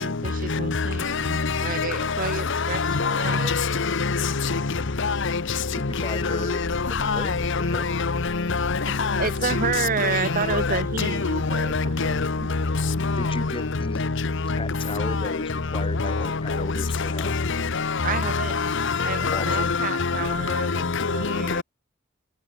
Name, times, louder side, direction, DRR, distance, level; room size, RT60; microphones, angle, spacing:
voice 1, 0.0-3.7 9.2-12.5 18.0-18.6 19.0-21.6, right 5 dB, 45° right, 1.0 m, -30 dB
voice 2, 2.8-3.7 4.0-4.2 4.5-4.6 5.0-5.2 7.1-7.4 8.5-9.3 10.0-10.1 10.5-10.7 11.0-12.2 12.7-13.4 18.5-20.1 20.5-20.7, left 4 dB, 65° left, 1.0 m, -24 dB
voice 3, 5.8-6.6 7.0-7.9 13.2-14.0 14.6-17.4 19.3-19.7, left 3 dB, 25° left, 0.9 m, -35 dB
sound 1, 5.9-17.1, equal, 50° left, 4.9 m, -46 dB
head